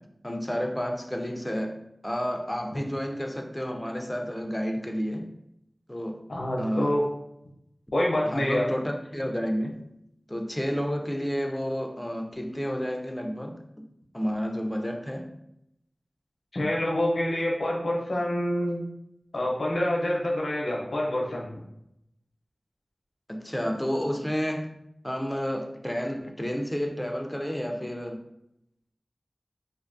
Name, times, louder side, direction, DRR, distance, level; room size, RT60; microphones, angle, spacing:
voice 1, 0.2-5.3 5.9-6.2 6.6-7.0 8.2-9.8 10.3-13.6 14.1-15.3 23.3-24.7 25.0-28.2, equal, 10° left, 3 dB, 0.4 m, -30 dB
voice 2, 6.3-7.0 7.9-8.7 16.5-18.9 19.3-21.5, left 1 dB, 90° left, -2 dB, 0.5 m, -26 dB
2.5 x 2.2 x 2.5 m, 0.80 s
wide cardioid pair, 50°, 0 cm